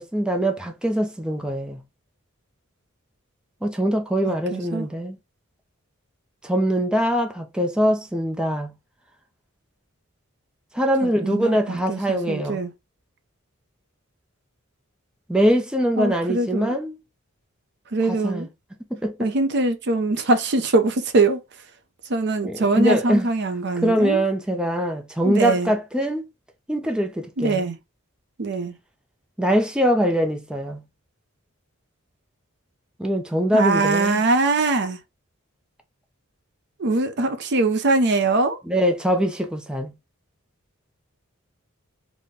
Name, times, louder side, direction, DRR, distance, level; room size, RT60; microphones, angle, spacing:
voice 1, 0.0-1.8 3.6-5.2 6.4-8.7 10.7-12.6 15.3-17.0 18.1-18.5 18.9-19.3 22.4-23.3 23.8-26.3 26.7-27.7 29.4-30.8 33.0-34.2 38.7-39.9, equal, 5° right, 0.5 m, -23 dB
voice 2, 4.3-4.9 11.0-12.7 16.0-16.8 17.9-18.5 19.2-21.4 22.1-24.2 25.2-25.7 27.4-27.7 28.4-28.7 33.5-35.0 36.8-38.6, right 2 dB, 55° right, 0.6 m, -22 dB
4.1 x 2.1 x 3.4 m
head